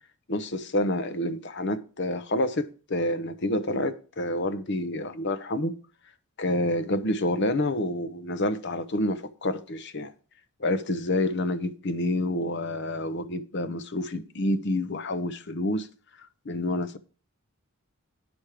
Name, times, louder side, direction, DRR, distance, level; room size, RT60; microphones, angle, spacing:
voice 1, 0.3-5.8 6.4-10.1 10.6-15.9 16.5-17.0, left 1 dB, 50° left, 0.7 m, -28 dB
10.0 x 6.2 x 4.8 m
head